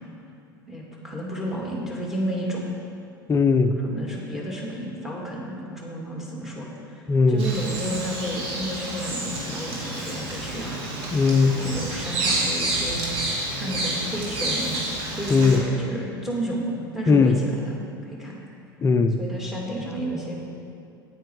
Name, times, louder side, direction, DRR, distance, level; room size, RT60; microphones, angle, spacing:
voice 1, 0.7-2.7 3.8-10.8 11.4-13.1 13.5-14.7 15.1-16.7 16.9-17.7 18.0-18.4 19.2-20.4, equal, ahead, -3 dB, 2.7 m, -32 dB
voice 2, 3.3-3.7 7.1-7.4 11.1-11.5 15.3-15.6 17.1-17.3 18.8-19.2, left 4 dB, 20° left, 8 dB, 0.6 m, -18 dB
Bird vocalization bird call bird song, 7.4-15.6, right 2 dB, 50° right, 2.5 m, -29 dB
9.3 x 9.0 x 4.8 m, 2.5 s
hypercardioid pair, 80°, 13 cm